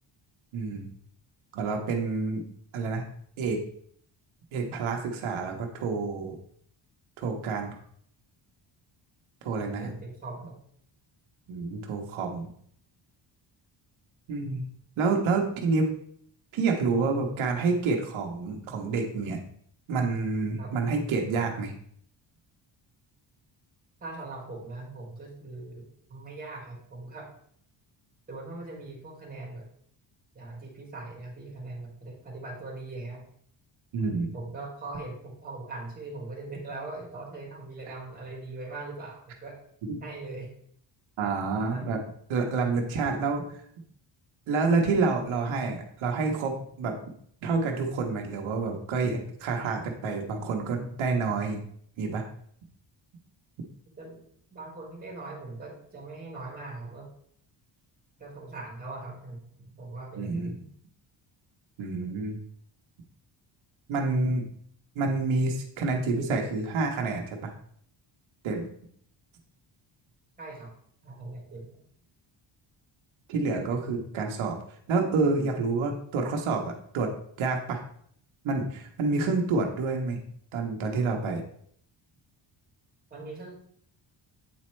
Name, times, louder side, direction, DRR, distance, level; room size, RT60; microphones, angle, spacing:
voice 1, 0.5-0.9 1.5-2.4 2.7-3.1 3.4-3.6 4.5-6.3 7.2-7.8 9.4-9.9 11.5-12.5 14.3-14.6 15.0-15.9 16.5-19.4 19.9-21.7 33.9-34.3 39.9-40.0 41.2-42.0 42.3-43.4 44.5-46.9 47.4-51.6 52.0-52.2 60.2-60.5 61.8-62.4 63.9-64.4 65.0-67.5 68.4-68.6 73.3-74.6 74.9-77.8 78.4-80.2 80.5-81.4, right 4 dB, 90° right, 2 dB, 1.1 m, -28 dB
voice 2, 9.8-10.5 20.6-20.7 24.0-27.3 28.3-29.7 30.3-33.2 34.3-39.6 40.0-40.5 41.5-42.0 54.0-54.2 54.5-57.1 58.2-60.7 70.4-70.7 71.0-71.8 83.1-83.5, right 2 dB, 20° right, -1 dB, 1.9 m, -41 dB
8.0 x 4.3 x 3.1 m, 0.64 s
cardioid pair, 155°, 47 cm